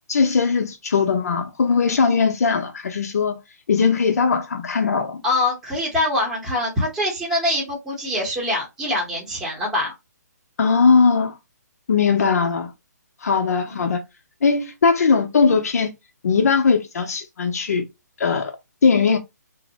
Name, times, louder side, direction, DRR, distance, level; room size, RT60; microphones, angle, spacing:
voice 1, 0.0-3.4 3.7-5.2 10.6-11.3 11.9-12.7 13.2-14.0 14.4-15.9 16.2-17.8 18.2-18.5 18.8-19.2, left 5 dB, 60° left, 0.6 m, -19 dB
voice 2, 5.2-9.9 13.7-13.9, left 1 dB, 5° right, 0.8 m, -24 dB
2.6 x 2.0 x 3.8 m
hypercardioid pair, 160°, 9 cm